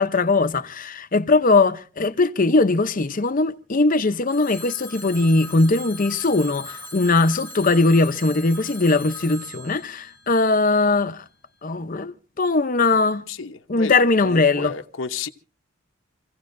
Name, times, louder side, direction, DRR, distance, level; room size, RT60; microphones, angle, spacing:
voice 1, 0.0-11.2 11.6-13.2 13.7-14.7, left 3 dB, 45° left, 0.7 m, -20 dB
Telephone, 4.3-11.1, left 1 dB, 10° left, 1.3 m, -40 dB
voice 2, 13.3-13.9 14.2-15.3, left 4 dB, 75° left, 0.9 m, -31 dB
27.5 x 16.0 x 2.6 m
head